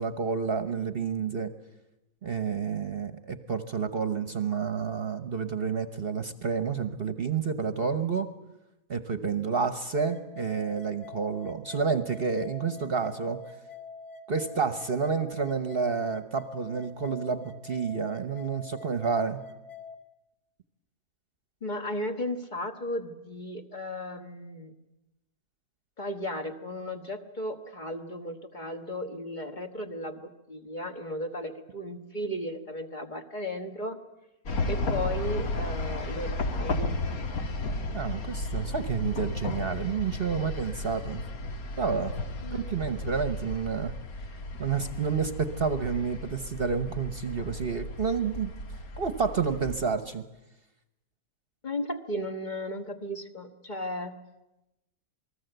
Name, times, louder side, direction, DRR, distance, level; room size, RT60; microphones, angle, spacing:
voice 1, 0.0-1.5 2.2-8.3 8.9-13.4 14.3-19.4 37.9-41.2 41.8-42.1 42.5-43.9 44.6-48.5 49.0-50.2, right 5 dB, 45° right, 11 dB, 1.1 m, -29 dB
sound 1, 9.9-20.0, left 4 dB, ahead, 2.0 m, -45 dB
voice 2, 21.6-24.7 26.0-34.0 34.7-37.0 42.4-42.9 51.6-54.2, left 1 dB, 30° left, 5 dB, 1.6 m, -35 dB
sound 2, 34.5-49.8, left 2 dB, 75° left, 2.0 m, -34 dB
28.0 x 20.0 x 8.0 m, 0.95 s
omnidirectional pair, 1.6 m